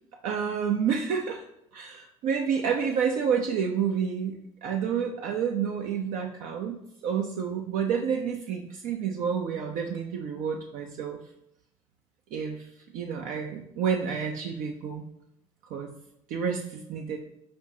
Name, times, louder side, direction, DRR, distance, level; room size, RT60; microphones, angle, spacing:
voice 1, 0.2-1.4 1.7-6.7 7.0-11.2 12.3-12.7 12.9-15.0 15.6-15.9 16.3-17.2, right 7 dB, 55° right, 2 dB, 0.5 m, -29 dB
4.9 x 3.4 x 2.7 m, 0.77 s
figure-of-eight pair, 55°, 16 cm